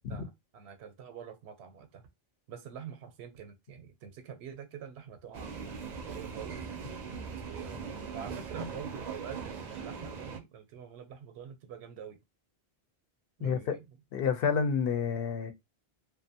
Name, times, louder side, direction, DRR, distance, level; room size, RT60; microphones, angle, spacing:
voice 1, 0.1-2.1 2.5-6.7 7.2-7.8 8.1-12.2 13.4-13.8, right 8 dB, 90° right, 0.8 m, -46 dB
sound 1, 5.3-10.4, right 5 dB, 55° right, 0.5 m, -40 dB
voice 2, 13.4-13.8 14.1-15.5, left 6 dB, 70° left, 0.7 m, -29 dB
2.5 x 2.1 x 2.6 m
omnidirectional pair, 1.1 m